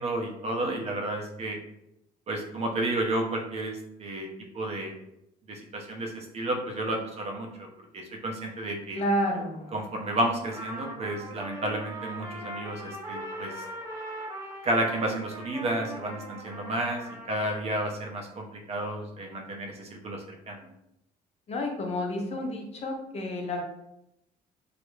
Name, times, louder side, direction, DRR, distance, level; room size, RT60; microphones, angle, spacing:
voice 1, 0.0-1.6 2.3-4.3 4.5-4.9 5.5-7.7 7.9-9.0 9.7-13.6 14.6-20.7, right 1 dB, 40° right, 1 dB, 0.5 m, -31 dB
voice 2, 8.9-9.8 21.5-23.6, left 1 dB, 40° left, 1 dB, 0.6 m, -30 dB
Trumpet, 10.5-17.7, right 1 dB, 20° right, 0.9 m, -40 dB
2.4 x 2.0 x 3.0 m, 0.82 s
cardioid pair, 110°, 17 cm